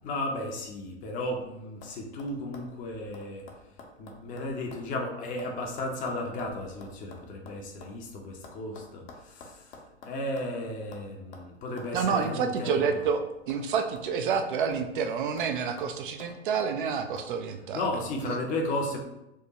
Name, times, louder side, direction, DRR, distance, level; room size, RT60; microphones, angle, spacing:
voice 1, 0.0-3.4 4.0-9.7 10.0-13.0 17.7-19.0, left 1 dB, 25° left, 1 dB, 0.6 m, -34 dB
sound 1, 1.8-1.9 2.2-4.9 5.1-8.0 8.4-10.6 10.9-11.1 11.3-11.5 11.8-11.9 12.2-12.4 12.7-13.7 14.0-15.0 15.4-15.5 15.8-16.7 17.2-17.3, left 3 dB, 60° left, 0.8 m, -49 dB
voice 2, 11.9-13.2 13.5-17.9 18.2-18.4, right 6 dB, 50° right, 7 dB, 0.4 m, -28 dB
4.6 x 2.2 x 2.8 m, 0.88 s
figure-of-eight pair, 100°, 33 cm